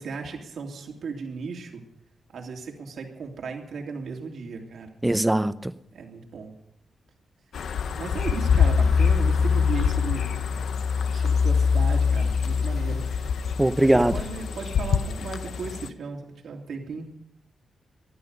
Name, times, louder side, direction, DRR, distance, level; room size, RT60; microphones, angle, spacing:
voice 1, 0.0-1.8 2.3-4.9 5.9-6.5 7.9-10.3 11.1-13.4 13.8-17.1, right 5 dB, 75° right, 1 dB, 3.1 m, -36 dB
voice 2, 5.0-5.7 13.6-14.1, right 1 dB, 10° right, 13 dB, 0.7 m, -20 dB
sound 1, 7.5-15.9, left 6 dB, 75° left, 0.8 m, -24 dB
19.0 x 12.5 x 5.4 m, 0.77 s
wide cardioid pair, 115°, 0 cm